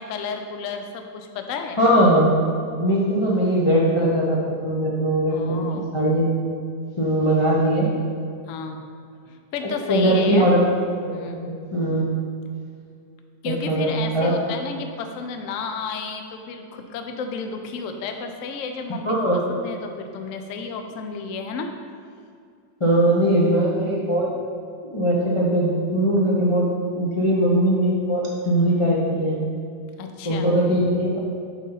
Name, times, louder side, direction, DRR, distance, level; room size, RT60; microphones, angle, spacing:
voice 1, 0.0-1.8 5.3-5.9 8.5-8.8 9.3-10.5 11.1-11.5 13.4-21.7 30.0-30.5, left 5 dB, 75° left, 5 dB, 0.7 m, -32 dB
voice 2, 1.8-2.3 2.8-5.7 5.9-6.2 7.0-7.9 9.9-10.6 11.5-12.0 13.4-13.9 14.1-14.3 19.1-19.3 22.8-24.3 24.8-29.4 30.2-31.2, right 1 dB, 45° left, -6 dB, 0.4 m, -20 dB
6.3 x 3.9 x 5.7 m, 2.3 s
omnidirectional pair, 2.0 m